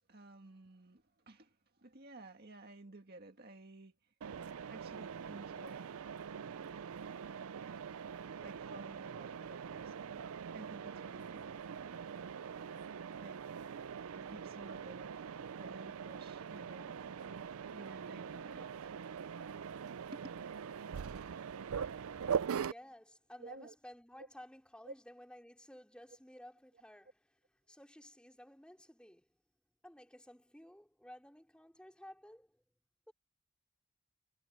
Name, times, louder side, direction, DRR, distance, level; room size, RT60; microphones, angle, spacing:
voice 1, 0.1-4.0 4.7-5.9 6.3-6.8 8.4-11.5 11.8-12.4 13.2-13.4 14.1-18.9 20.1-20.2 22.8-22.9 23.4-23.8 24.2-24.3 24.8-24.9, right 2 dB, 45° right, 1.9 m, -54 dB
Mechanisms, 4.2-22.7, right 7 dB, 85° right, 0.4 m, -42 dB
voice 2, 22.6-27.2 27.7-29.3 29.8-32.6 33.1-33.2, left 1 dB, 5° left, 4.3 m, -55 dB
head